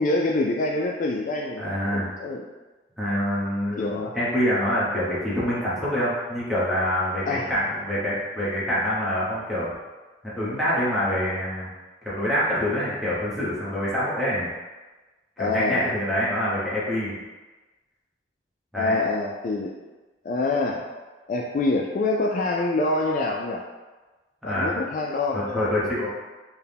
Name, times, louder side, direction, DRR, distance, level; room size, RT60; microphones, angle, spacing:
voice 1, 0.0-2.4 3.8-4.2 7.3-7.5 15.4-15.9 18.7-19.7 20.2-20.9 21.3-23.6 24.4-25.7, left 2 dB, 45° left, -1 dB, 0.3 m, -26 dB
voice 2, 1.6-2.1 3.0-9.7 10.2-11.7 12.0-14.5 15.4-17.1 18.7-19.0 24.4-24.8 25.3-26.1, equal, ahead, -9 dB, 1.0 m, -26 dB
4.5 x 2.2 x 3.4 m, 1.2 s
head